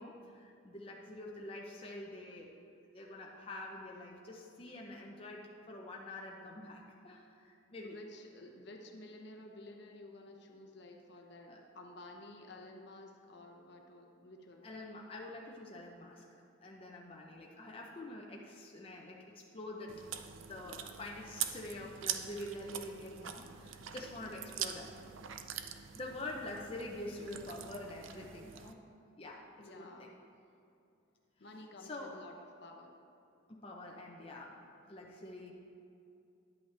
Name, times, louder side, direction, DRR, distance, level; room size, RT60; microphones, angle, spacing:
voice 1, 0.0-2.5 2.9-8.0 11.5-11.6 14.6-16.3 16.6-24.9 25.7-28.8 29.2-30.1 31.8-32.2 33.5-34.5 34.9-35.5, left 1 dB, 30° left, -2 dB, 0.7 m, -46 dB
voice 2, 7.8-14.7 29.6-30.2 31.4-32.3 32.6-32.9, left 1 dB, 55° left, 2 dB, 0.9 m, -52 dB
Chewing mastication, 19.9-28.7, right 9 dB, 75° right, 0.5 m, -44 dB
10.5 x 8.3 x 3.3 m, 2.6 s
head